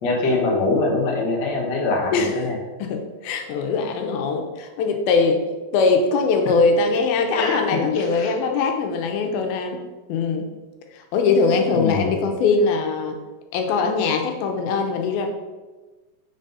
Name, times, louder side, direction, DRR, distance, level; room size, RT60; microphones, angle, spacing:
voice 1, 0.0-2.6 6.4-6.5 7.3-8.3 11.7-12.2, left 3 dB, 65° left, -2 dB, 1.1 m, -23 dB
voice 2, 2.8-5.4 5.7-9.8 10.1-10.5 11.1-13.2 13.5-15.3, left 4 dB, 85° left, 4 dB, 2.6 m, -21 dB
6.3 x 3.9 x 5.3 m, 1.2 s
omnidirectional pair, 4.2 m